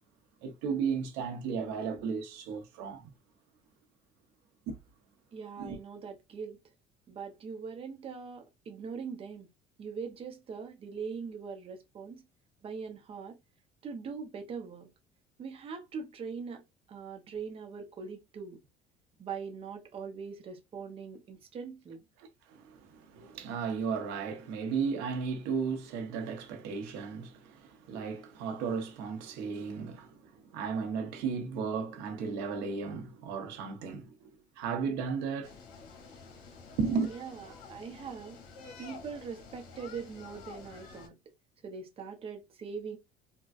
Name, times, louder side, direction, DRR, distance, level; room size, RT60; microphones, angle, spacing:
voice 1, 0.4-3.1 4.7-4.8 5.6-5.8 22.2-34.3 34.6-35.5 36.8-37.1, right 5 dB, 90° right, 1.0 m, -35 dB
voice 2, 5.3-6.6 7.1-9.5 9.8-12.2 12.6-13.4 13.8-14.9 15.4-16.6 16.9-18.6 19.2-22.0 37.1-38.4 38.8-41.1 41.6-43.0, right 5 dB, 35° right, 0.7 m, -41 dB
sound 1, 35.4-41.1, left 5 dB, 90° left, 0.9 m, -50 dB
3.9 x 2.2 x 2.5 m
cardioid pair, 140°, 17 cm